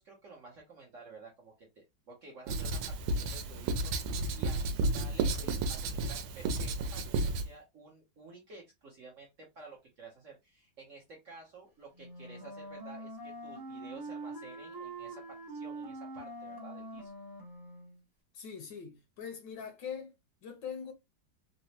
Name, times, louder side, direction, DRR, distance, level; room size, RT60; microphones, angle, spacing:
voice 1, 0.0-17.1, right 3 dB, 65° right, 0.7 m, -52 dB
Writing, 2.5-7.5, right 2 dB, 90° right, 1.4 m, -32 dB
Wind instrument woodwind instrument, 11.9-18.0, right 2 dB, 35° right, 0.3 m, -44 dB
voice 2, 18.3-20.1 20.4-20.9, left 7 dB, 70° left, 1.2 m, -42 dB
3.9 x 2.0 x 2.7 m
omnidirectional pair, 2.3 m